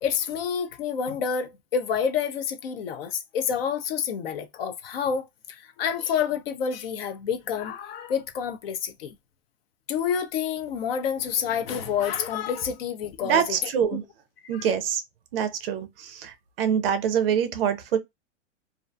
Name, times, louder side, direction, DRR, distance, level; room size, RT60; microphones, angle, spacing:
voice 1, 0.0-5.3 5.8-9.1 9.9-13.4 13.9-14.0 14.5-14.6, left 7 dB, 50° left, 0.5 m, -28 dB
voice 2, 13.2-14.0 14.5-15.0 15.3-18.0, right 8 dB, 50° right, 0.5 m, -25 dB
2.4 x 2.2 x 2.5 m
supercardioid pair, 160°, 38 cm